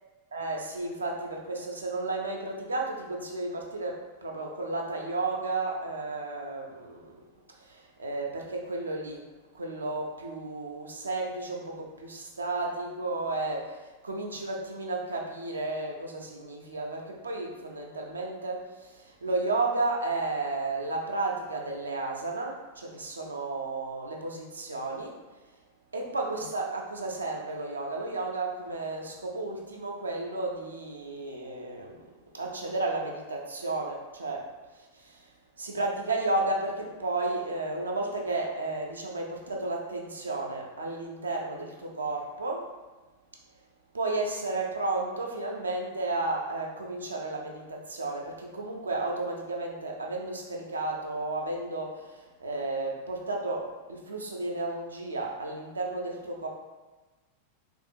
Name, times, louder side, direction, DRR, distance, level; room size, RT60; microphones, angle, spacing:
voice 1, 0.3-7.2 7.6-9.2 9.5-25.2 25.9-32.0 32.3-34.5 34.9-35.3 35.6-42.7 43.9-56.5, right 2 dB, 75° right, 0 dB, 0.4 m, -33 dB
2.6 x 2.4 x 2.6 m, 1.2 s
figure-of-eight pair, 90°, 0 cm